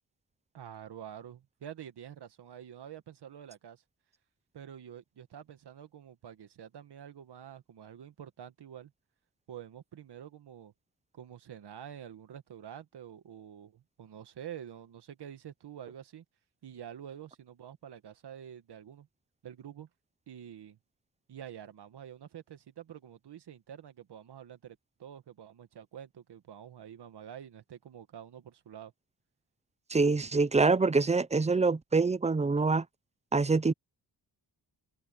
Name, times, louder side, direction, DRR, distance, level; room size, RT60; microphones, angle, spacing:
voice 1, 0.5-3.8 4.5-8.9 9.5-10.7 11.1-16.2 16.6-19.1 19.4-19.9 20.3-20.8 21.3-28.9, right 9 dB, 75° right, 1.8 m, -47 dB
voice 2, 29.9-32.8 33.3-33.7, right 3 dB, 15° right, 0.5 m, -25 dB
wide cardioid pair, 150°, 40 cm